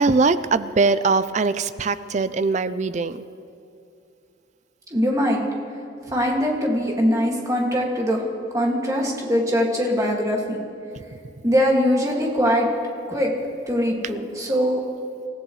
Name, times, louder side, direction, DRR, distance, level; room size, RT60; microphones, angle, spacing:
voice 1, 0.0-3.2, right 4 dB, 40° right, 14 dB, 0.4 m, -21 dB
voice 2, 4.9-5.4 6.1-8.2 8.5-10.6 11.4-12.7 13.1-13.3 13.7-14.8, equal, 15° right, -1 dB, 2.1 m, -21 dB
27.5 x 14.5 x 3.2 m, 2.6 s
head